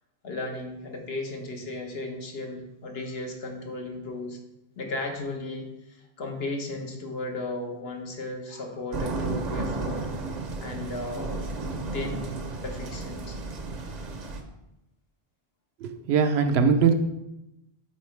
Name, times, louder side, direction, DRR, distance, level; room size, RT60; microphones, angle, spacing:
voice 1, 0.2-4.4 4.8-10.0 10.6-11.4 11.7-13.4, left 2 dB, 70° left, 2 dB, 1.2 m, -35 dB
sound 1, 8.9-14.4, right 3 dB, 50° right, 0.7 m, -33 dB
voice 2, 15.8-16.9, right 6 dB, 80° right, 8 dB, 0.8 m, -21 dB
8.5 x 3.8 x 3.2 m, 0.90 s
omnidirectional pair, 1.1 m